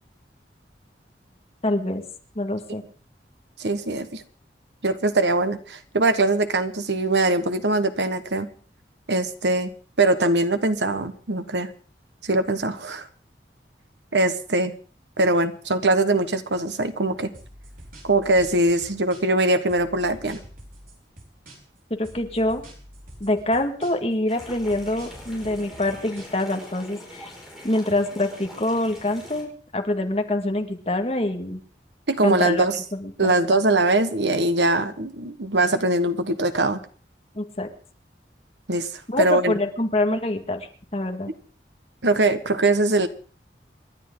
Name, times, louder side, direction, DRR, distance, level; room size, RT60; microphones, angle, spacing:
voice 1, 1.6-2.0 2.4-2.8 22.0-22.6 23.2-27.3 27.6-31.6 32.2-33.6 37.4-37.7 39.1-41.3, left 1 dB, 35° left, 5 dB, 1.9 m, -25 dB
voice 2, 3.6-4.2 4.8-8.5 9.1-9.7 10.0-11.7 12.2-13.1 14.1-14.7 15.2-17.3 18.0-20.4 32.1-32.8 33.2-36.8 38.7-38.9 39.2-39.5 42.0-43.1, right 2 dB, 80° right, 10 dB, 1.4 m, -22 dB
sound 1, 17.3-19.4 19.7-21.8 22.0-24.1 24.4-26.7, right 1 dB, 50° right, 4.8 m, -46 dB
sound 2, 24.3-29.4, left 1 dB, ahead, 5.6 m, -43 dB
27.5 x 11.5 x 3.8 m, 0.41 s
head